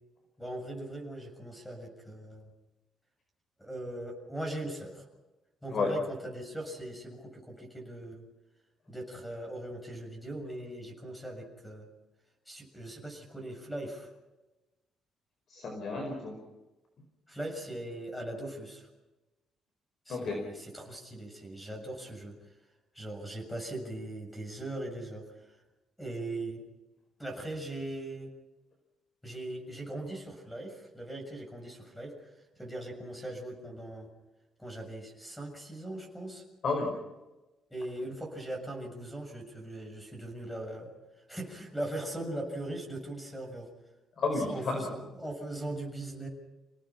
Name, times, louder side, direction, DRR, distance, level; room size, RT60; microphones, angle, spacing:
voice 1, 0.4-2.5 3.6-5.1 5.6-8.2 8.9-11.9 12.5-14.1 17.3-18.9 20.1-22.5 22.9-25.6 26.0-26.6 27.2-28.3 29.2-34.1 34.6-36.4 37.7-43.7 44.4-46.3, right 1 dB, 5° left, 2 dB, 7.0 m, -40 dB
voice 2, 15.5-16.4 20.1-20.4 36.6-36.9 44.2-44.8, left 4 dB, 50° left, 3 dB, 4.9 m, -31 dB
29.5 x 18.5 x 5.9 m, 1.1 s
cardioid pair, 150°, 0 cm